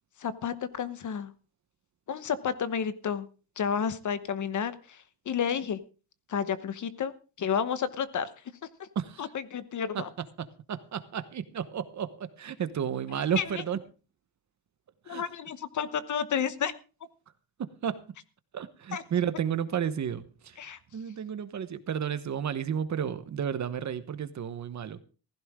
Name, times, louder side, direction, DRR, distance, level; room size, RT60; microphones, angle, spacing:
voice 1, 0.2-1.3 2.1-3.3 3.6-5.8 6.3-8.3 8.8-8.9 9.2-10.1 13.4-13.6 15.1-16.7 18.9-19.0 20.6-20.8, left 7 dB, 45° left, 14 dB, 1.1 m, -31 dB
voice 2, 8.9-9.3 9.9-10.0 10.4-13.8 15.1-15.2 17.6-18.0 18.5-20.6 20.9-25.0, right 8 dB, 40° right, 12 dB, 1.1 m, -32 dB
16.0 x 15.0 x 3.7 m, 0.36 s
cardioid pair, 175°, 41 cm